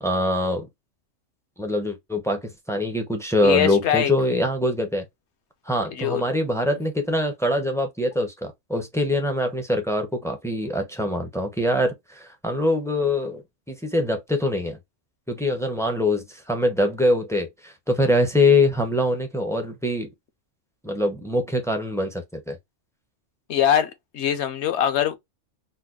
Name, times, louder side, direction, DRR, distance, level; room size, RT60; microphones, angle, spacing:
voice 1, 0.0-0.7 1.6-5.1 5.7-14.8 15.3-20.1 20.8-22.6, left 1 dB, 5° left, 0.3 m, -24 dB
voice 2, 3.4-4.1 6.0-6.2 23.5-25.2, left 10 dB, 60° left, 0.9 m, -22 dB
4.0 x 2.2 x 2.3 m
omnidirectional pair, 1.4 m